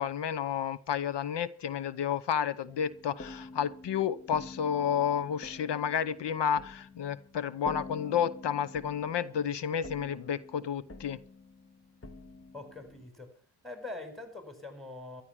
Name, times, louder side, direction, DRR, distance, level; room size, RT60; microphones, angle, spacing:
voice 1, 0.0-11.2, left 8 dB, 90° left, 18 dB, 0.9 m, -31 dB
sound 1, 2.7-13.1, left 2 dB, 30° left, 1.8 m, -48 dB
voice 2, 12.5-13.4 13.6-15.2, left 2 dB, ahead, 7 dB, 5.3 m, -43 dB
13.5 x 12.0 x 6.1 m, 0.43 s
cardioid pair, 60°, 41 cm